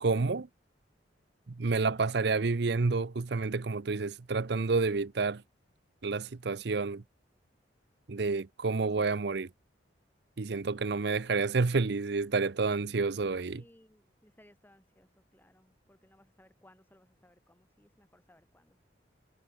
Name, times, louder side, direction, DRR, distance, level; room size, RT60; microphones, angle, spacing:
voice 1, 0.0-0.5 1.6-5.4 6.0-7.0 8.1-9.5 10.4-13.6, right 4 dB, 60° right, 0.7 m, -29 dB
voice 2, 13.5-18.8, left 1 dB, 10° left, 5.9 m, -62 dB
head